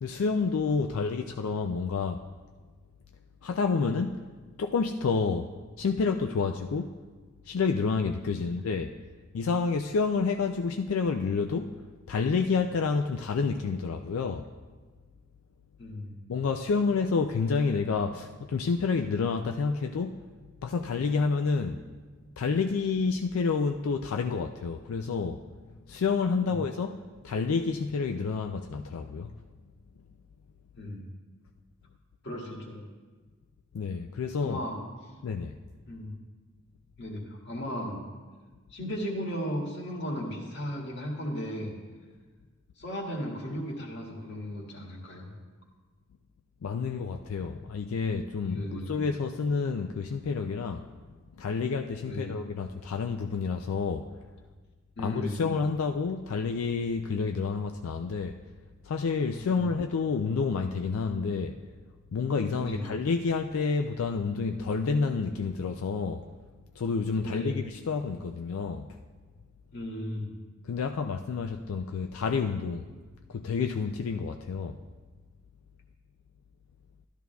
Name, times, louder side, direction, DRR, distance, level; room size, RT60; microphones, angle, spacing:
voice 1, 0.0-2.2 3.4-4.2 4.6-5.5 5.8-7.0 7.5-8.9 9.3-11.7 12.1-14.5 16.3-20.2 20.6-21.8 22.4-25.4 25.9-29.3 33.7-34.6 35.2-35.6 46.6-50.8 51.4-54.1 55.0-58.4 58.8-61.5 62.1-66.2 66.8-68.9 70.7-72.9 73.3-74.8, left 5 dB, 90° left, 5 dB, 0.4 m, -29 dB
voice 2, 15.8-16.2 26.4-26.6 30.8-31.1 32.2-32.9 34.4-34.8 35.9-36.1 37.0-38.0 38.7-41.8 42.8-45.3 48.4-48.9 52.0-52.3 55.0-55.5 59.5-59.7 62.6-62.9 67.2-67.6 69.7-70.3, equal, 55° left, -2 dB, 1.8 m, -36 dB
13.0 x 12.5 x 2.3 m, 1.4 s
head